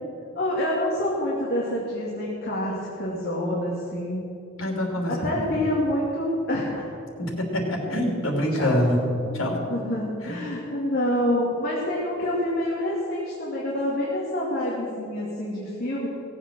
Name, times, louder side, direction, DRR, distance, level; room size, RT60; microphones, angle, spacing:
voice 1, 0.3-4.3 5.1-6.8 8.6-8.8 9.3-16.1, left 1 dB, 50° left, -5 dB, 2.4 m, -27 dB
voice 2, 4.6-5.4 7.2-9.0 9.3-9.6 10.2-10.4, equal, 80° left, 1 dB, 3.1 m, -25 dB
17.0 x 7.9 x 7.5 m, 2.8 s
head